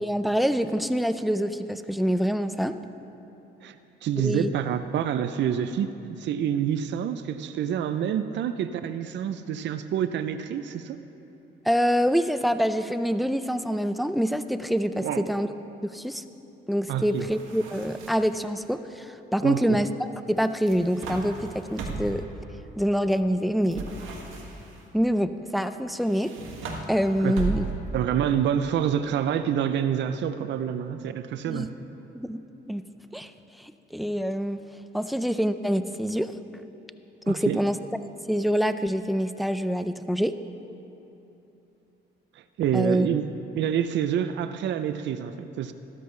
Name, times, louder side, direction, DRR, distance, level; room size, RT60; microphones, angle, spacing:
voice 1, 0.0-2.8 4.2-4.5 11.7-15.5 15.8-16.2 16.7-22.2 22.8-23.8 24.9-26.3 26.9-27.7 31.5-31.7 32.1-32.4 32.7-32.8 33.1-33.3 33.6-34.6 34.9-36.3 37.3-37.8 38.3-40.3 42.7-43.1, equal, ahead, 10 dB, 0.4 m, -26 dB
voice 2, 4.0-5.9 6.2-11.0 14.9-15.3 16.9-17.3 19.4-19.8 27.2-27.7 27.9-31.7 37.3-37.6 42.6-45.7, right 9 dB, 65° right, 10 dB, 0.5 m, -27 dB
sound 1, 17.1-18.4 20.4-22.3 23.7-24.8 26.0-28.0, right 4 dB, 85° right, 1.5 m, -36 dB
13.5 x 12.0 x 3.2 m, 3.0 s
cardioid pair, 90°, 20 cm